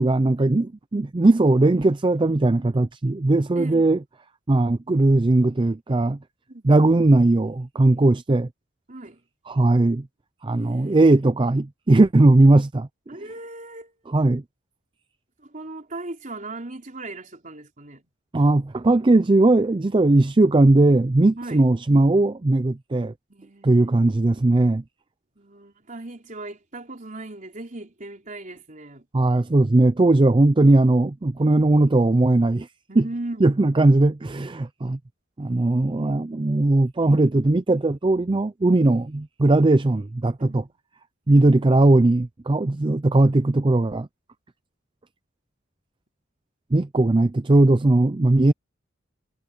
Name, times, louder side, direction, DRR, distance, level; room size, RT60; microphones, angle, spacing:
voice 1, 0.0-4.0 4.5-6.2 6.6-8.5 9.5-10.1 10.4-12.9 14.1-14.4 18.3-23.1 23.6-24.8 29.1-32.7 33.0-33.1 33.4-35.0 35.4-40.6 41.3-44.1 46.7-48.5, right 2 dB, 25° right, 0.5 m, -18 dB
voice 2, 3.5-3.9 6.5-6.7 8.9-9.2 10.6-11.0 13.1-13.9 15.4-18.0 21.4-21.7 23.3-24.0 25.4-29.0 32.9-33.6 40.4-40.7 41.3-41.6, right 2 dB, 40° right, 4.0 m, -38 dB
head